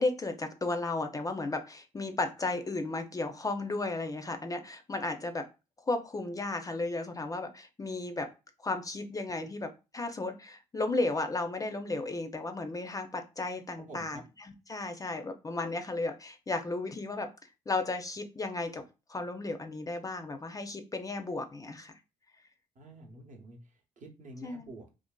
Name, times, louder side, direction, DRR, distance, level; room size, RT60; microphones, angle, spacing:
voice 1, 0.0-5.4 5.9-8.3 8.6-17.3 17.7-18.8 19.1-21.9 24.4-24.7, left 2 dB, 25° left, 7 dB, 0.4 m, -34 dB
voice 2, 13.8-14.2 22.8-24.9, right 2 dB, 60° right, 2 dB, 0.8 m, -49 dB
2.5 x 2.4 x 2.2 m, 0.28 s
supercardioid pair, 75°, 15 cm